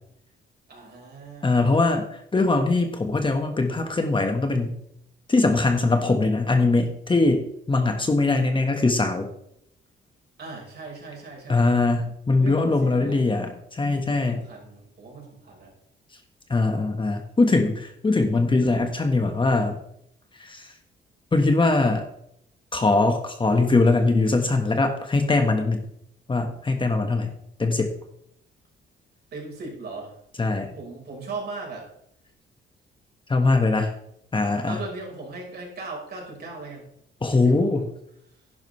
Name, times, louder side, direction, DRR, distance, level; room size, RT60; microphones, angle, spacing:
voice 1, 0.7-1.8 10.4-11.7 12.4-13.2 14.1-15.7 29.3-30.2 30.8-31.9 34.7-36.9 37.3-37.8 38.3-38.4, right 3 dB, 55° right, -1 dB, 4.9 m, -38 dB
voice 2, 1.4-2.0 2.3-4.8 5.3-9.3 11.5-14.4 16.5-19.8 20.4-20.7 21.3-22.0 22.7-25.9 26.3-27.3 27.6-27.9 30.4-30.7 33.3-33.9 34.3-34.7 37.2-37.9, left 3 dB, 25° left, 5 dB, 1.5 m, -21 dB
11.0 x 10.5 x 3.3 m, 0.73 s
cardioid pair, 90°, 20 cm